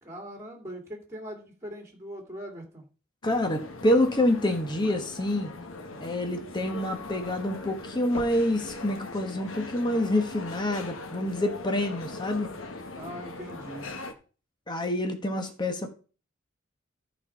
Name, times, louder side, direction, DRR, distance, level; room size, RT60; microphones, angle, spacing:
voice 1, 0.0-2.9 13.0-14.0, equal, 15° right, 1 dB, 2.5 m, -41 dB
sound 1, 3.2-14.1, left 2 dB, 80° left, 1.3 m, -40 dB
voice 2, 3.2-5.5 6.0-12.5 14.7-15.9, left 1 dB, 20° left, 4 dB, 1.2 m, -27 dB
13.0 x 4.4 x 5.8 m, 0.36 s
head